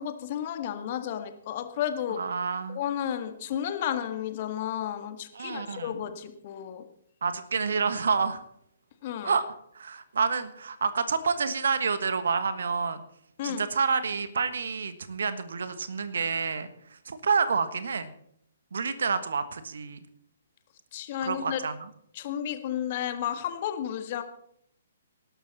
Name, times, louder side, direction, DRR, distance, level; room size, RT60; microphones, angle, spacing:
voice 1, 0.0-2.2 2.7-6.8 9.0-9.3 13.4-13.6 20.9-21.6 22.1-24.2, left 10 dB, 40° left, 8 dB, 1.7 m, -32 dB
voice 2, 2.2-2.8 5.3-6.0 7.2-8.4 9.2-9.4 9.7-13.0 13.4-18.1 18.7-20.0 21.2-21.8, right 5 dB, 65° right, 12 dB, 1.4 m, -28 dB
19.0 x 12.0 x 4.2 m, 0.71 s
figure-of-eight pair, 125°, 0 cm